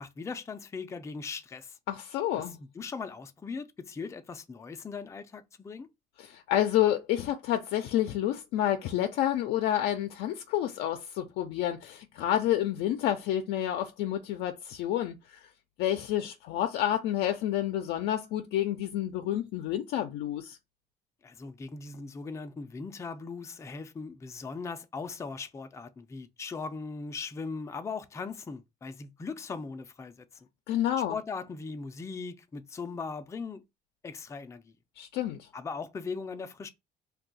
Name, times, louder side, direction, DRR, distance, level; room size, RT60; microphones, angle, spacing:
voice 1, 0.0-1.8 2.4-5.9 21.2-30.5 31.1-33.6 34.0-34.7 35.5-36.7, left 4 dB, 15° left, 0.4 m, -39 dB
voice 2, 1.9-2.6 6.2-15.4 15.8-20.6 30.7-31.2 35.0-35.5, left 12 dB, 85° left, 0.4 m, -29 dB
2.7 x 2.3 x 3.9 m
cardioid pair, 110°, 17 cm